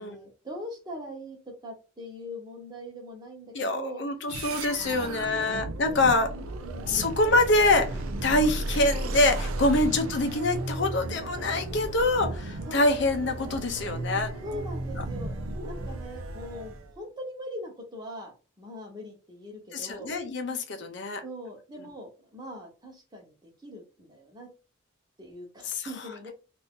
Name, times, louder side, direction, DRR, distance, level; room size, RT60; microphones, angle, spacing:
voice 1, 0.0-4.0 4.9-5.6 5.9-7.1 8.2-8.4 9.7-9.8 12.7-12.9 14.4-20.1 21.2-24.5 25.2-26.3, equal, 20° right, 1 dB, 0.9 m, -41 dB
voice 2, 3.5-6.3 6.9-14.3 19.7-21.2 25.6-25.9, left 2 dB, 55° left, 6 dB, 0.5 m, -25 dB
sound 1, 4.3-16.9, right 2 dB, 90° right, 0.5 m, -34 dB
2.6 x 2.5 x 3.6 m, 0.34 s
head